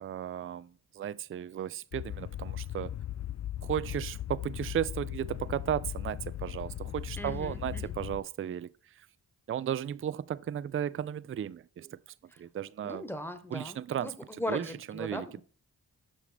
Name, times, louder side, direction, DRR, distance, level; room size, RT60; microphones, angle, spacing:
voice 1, 0.0-2.9 3.6-9.1 9.5-12.0 12.4-13.0 13.5-14.1 14.5-15.4, right 10 dB, 35° right, 0.4 m, -35 dB
sound 1, 1.9-8.2, left 12 dB, 40° left, 0.4 m, -38 dB
voice 2, 7.2-7.9 12.3-12.4 12.8-15.4, left 1 dB, 5° left, 1.2 m, -39 dB
7.1 x 6.0 x 3.3 m
cardioid pair, 40°, 42 cm